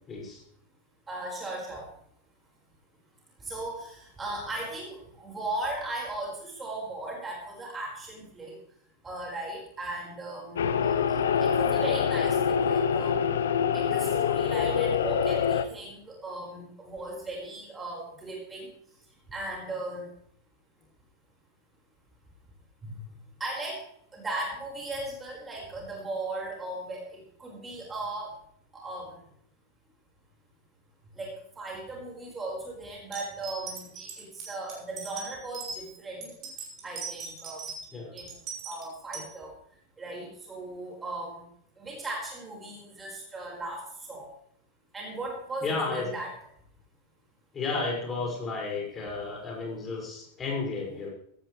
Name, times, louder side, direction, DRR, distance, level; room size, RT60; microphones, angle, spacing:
voice 1, 0.1-0.4 36.2-36.3 37.9-38.1 45.6-46.1 47.5-51.1, left 3 dB, 20° left, -1 dB, 5.7 m, -32 dB
voice 2, 1.1-1.9 3.4-8.5 9.0-13.3 13.7-18.7 19.3-20.1 22.8-22.9 23.4-23.8 24.1-28.3 28.7-29.2 31.2-36.2 36.8-37.7 38.1-38.3 38.6-39.5 40.0-41.5 41.8-44.3 44.9-46.3, right 2 dB, 15° right, -2 dB, 4.9 m, -37 dB
sound 1, 10.6-15.6, left 7 dB, 65° left, 0.8 m, -25 dB
sound 2, 33.1-35.8 36.2-37.9 38.2-39.3, right 5 dB, 35° right, 7.0 m, -39 dB
16.0 x 14.5 x 3.3 m, 0.67 s
figure-of-eight pair, 90°, 0 cm